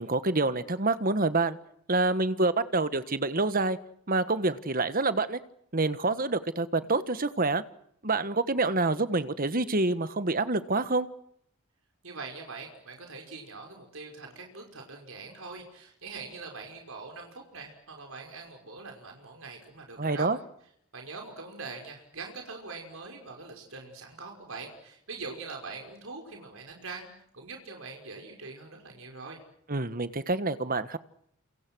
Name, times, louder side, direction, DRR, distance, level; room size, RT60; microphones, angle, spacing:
voice 1, 0.0-1.6 1.9-3.8 4.1-5.4 5.7-7.6 8.0-11.1 20.0-20.4 29.7-31.0, right 3 dB, 40° right, 13 dB, 1.4 m, -27 dB
voice 2, 12.0-20.3 20.9-29.4, right 4 dB, 65° right, 2 dB, 5.6 m, -43 dB
30.0 x 27.5 x 6.3 m, 0.71 s
head